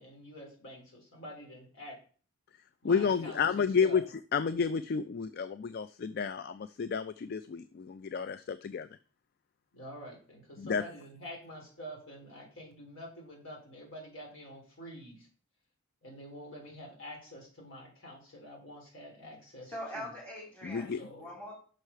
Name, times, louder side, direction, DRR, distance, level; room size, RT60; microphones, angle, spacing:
voice 1, 0.0-2.0 2.8-4.0 9.7-15.3 16.0-20.1 21.0-21.3, equal, 65° left, 0 dB, 3.5 m, -47 dB
voice 2, 2.8-4.0 4.3-8.9 10.6-10.8 20.6-21.0, left 6 dB, 45° left, 13 dB, 0.3 m, -31 dB
voice 3, 19.7-21.5, equal, 5° left, -2 dB, 2.8 m, -42 dB
6.3 x 4.8 x 5.6 m, 0.41 s
head